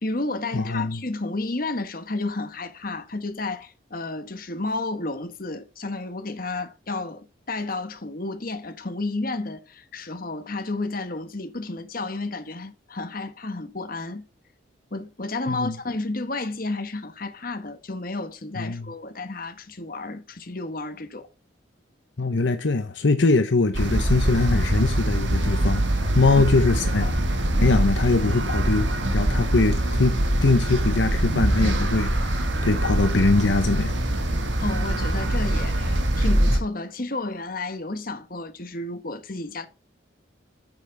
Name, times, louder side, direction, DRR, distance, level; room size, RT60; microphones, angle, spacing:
voice 1, 0.0-14.3 14.9-21.3 26.3-26.5 27.0-27.2 34.6-39.7, left 2 dB, 50° left, 1.5 m, -31 dB
voice 2, 0.5-1.0 15.5-15.7 18.6-18.9 22.2-25.8 26.1-27.1 27.6-30.2 30.4-32.3 32.6-34.0, left 3 dB, 80° left, 0.9 m, -22 dB
sound 1, 23.7-36.6, right 1 dB, 80° right, 1.8 m, -23 dB
9.3 x 7.2 x 3.4 m
head